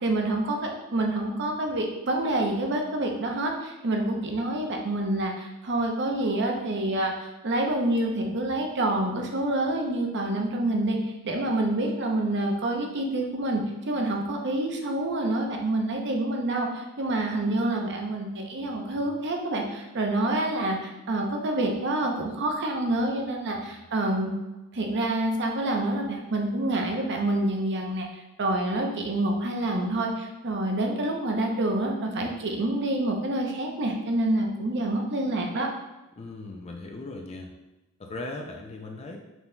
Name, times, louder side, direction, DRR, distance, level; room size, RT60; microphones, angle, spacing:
voice 1, 0.0-13.6 13.9-24.3 24.7-35.7, right 1 dB, 55° right, 2 dB, 0.7 m, -27 dB
voice 2, 36.2-37.5 38.0-39.2, left 2 dB, 30° left, 2 dB, 0.4 m, -38 dB
5.9 x 4.0 x 2.2 m, 1.0 s
head